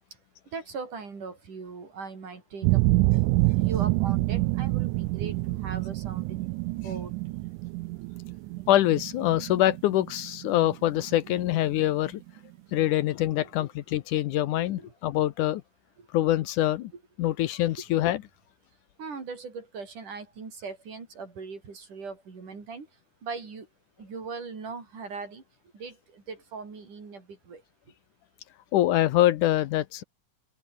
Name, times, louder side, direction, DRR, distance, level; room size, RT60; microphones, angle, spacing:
voice 1, 0.5-2.8 3.5-7.1 12.8-13.0 13.3-13.5 14.5-14.9 16.0-16.1 16.9-17.0 19.0-22.9 23.2-23.7 24.0-25.4 25.7-27.6, right 4 dB, 65° right, 6.8 m, -40 dB
sound 1, 2.6-11.4 11.8-12.3, right 21 dB, 80° right, 1.8 m, -27 dB
voice 2, 8.7-12.2 12.7-15.6 16.1-16.9 17.2-18.2 28.7-30.0, left 14 dB, 75° left, 2.2 m, -24 dB
open air
omnidirectional pair, 3.9 m